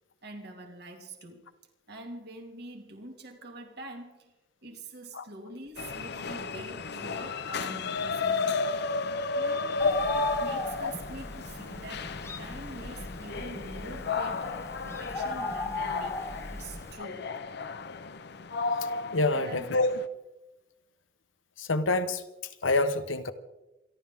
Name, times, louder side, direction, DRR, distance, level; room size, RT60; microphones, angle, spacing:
voice 1, 0.2-1.5 1.9-4.3 4.6-8.7 9.3-9.8 10.1-14.6 14.8-17.5 19.3-19.7, right 1 dB, 55° right, 2.5 m, -45 dB
sound 1, 5.8-20.1, left 4 dB, 55° left, 0.8 m, -34 dB
Bird, 9.8-16.9, left 2 dB, 15° left, 0.9 m, -38 dB
voice 2, 19.1-19.9 21.6-22.2 22.6-23.3, left 3 dB, 85° left, 1.2 m, -26 dB
27.5 x 12.0 x 3.7 m
head